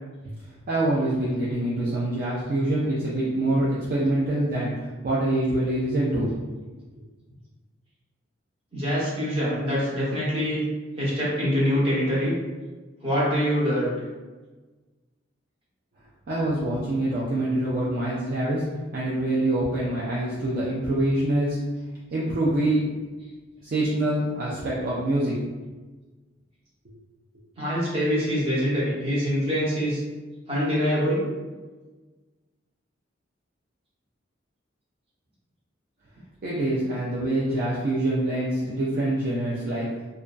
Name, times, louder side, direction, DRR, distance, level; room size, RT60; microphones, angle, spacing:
voice 1, 0.7-6.3 16.3-18.7 18.9-21.6 22.1-22.9 23.6-25.3 36.4-39.9, right 1 dB, 45° right, -7 dB, 0.4 m, -25 dB
voice 2, 8.7-10.6 11.0-12.3 13.0-13.9 27.6-30.0 30.5-31.3, equal, 30° right, -8 dB, 0.8 m, -24 dB
2.4 x 2.2 x 2.2 m, 1.3 s
head